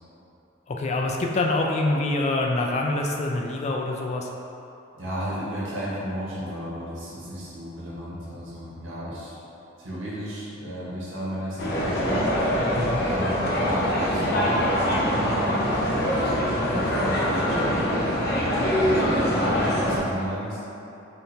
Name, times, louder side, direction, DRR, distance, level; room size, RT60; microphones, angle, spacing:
voice 1, 0.7-4.3 12.7-13.0, left 2 dB, 35° left, 1 dB, 0.3 m, -25 dB
voice 2, 4.9-9.3 9.8-12.3 13.1-18.2 18.9-20.6, equal, 65° right, -8 dB, 1.4 m, -33 dB
sound 1, 11.6-20.0, equal, 50° left, 0.8 m, -24 dB
3.8 x 3.4 x 4.1 m, 2.9 s
head